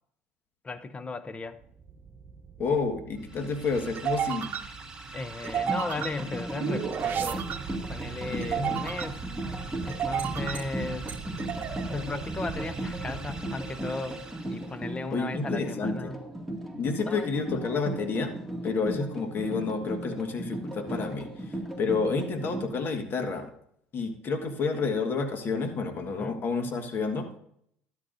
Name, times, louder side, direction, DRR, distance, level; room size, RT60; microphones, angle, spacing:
voice 1, 0.6-1.6 5.1-7.5 7.9-9.2 9.8-11.1 11.9-16.2 17.0-17.3 26.2-26.4, left 3 dB, 25° left, 0.8 m, -36 dB
sound 1, 1.6-14.4, right 8 dB, 45° right, 1.0 m, -35 dB
voice 2, 2.6-4.6 8.3-8.8 15.1-16.1 16.7-18.4 18.6-23.5 23.9-27.3, left 4 dB, 45° left, 1.7 m, -30 dB
sound 2, 3.2-15.0, right 3 dB, 15° right, 2.0 m, -45 dB
sound 3, 5.4-22.6, right 1 dB, 5° left, 2.2 m, -37 dB
12.5 x 12.0 x 2.7 m
hypercardioid pair, 75°, 5 cm